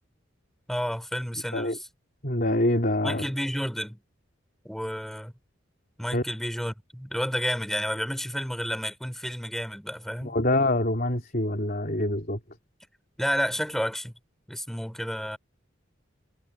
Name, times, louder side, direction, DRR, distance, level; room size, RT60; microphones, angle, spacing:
voice 1, 0.7-1.8 3.0-4.0 4.6-5.3 6.0-10.4 13.2-14.1 14.5-15.4, equal, ahead, 6.0 m, -31 dB
voice 2, 2.2-3.2 6.1-6.2 10.2-12.4, left 1 dB, 45° left, 3.8 m, -25 dB
head